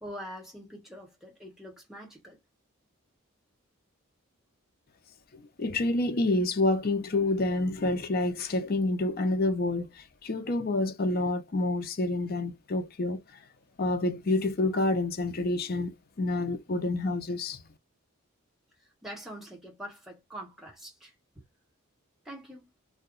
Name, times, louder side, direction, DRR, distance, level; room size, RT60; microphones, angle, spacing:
voice 1, 0.0-2.4 18.8-21.4 22.2-22.7, equal, ahead, 1.3 m, -44 dB
voice 2, 5.6-13.2 13.8-17.6, left 2 dB, 45° left, 0.5 m, -28 dB
2.7 x 2.2 x 3.7 m
head